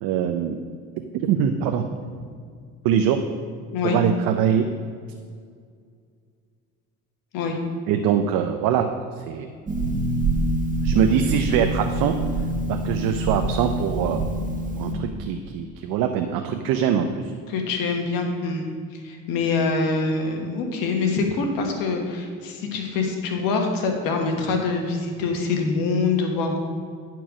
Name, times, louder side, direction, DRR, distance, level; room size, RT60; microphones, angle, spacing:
voice 1, 0.0-0.6 1.2-1.8 2.8-3.2 3.8-4.7 7.9-8.9 9.2-9.5 10.8-12.2 12.7-14.4 14.8-17.3, right 8 dB, 80° right, 5 dB, 0.7 m, -23 dB
Harp, 9.7-14.9, right 1 dB, 25° right, 1.6 m, -25 dB
voice 2, 17.5-26.6, left 4 dB, 80° left, 3 dB, 1.5 m, -25 dB
10.5 x 4.6 x 6.2 m, 2.1 s
supercardioid pair, 80°, 34 cm